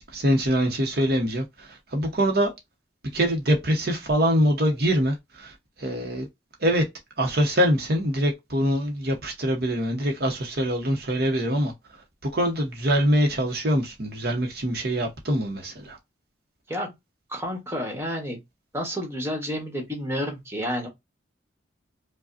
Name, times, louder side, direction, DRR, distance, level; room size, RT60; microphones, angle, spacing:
voice 1, 0.1-2.5 3.1-6.3 6.6-6.8 7.2-11.7 12.2-16.0, equal, 55° right, 0.9 m, -24 dB
voice 2, 17.3-18.4 18.7-20.9, equal, 15° right, 1.2 m, -30 dB
4.9 x 2.2 x 2.5 m
head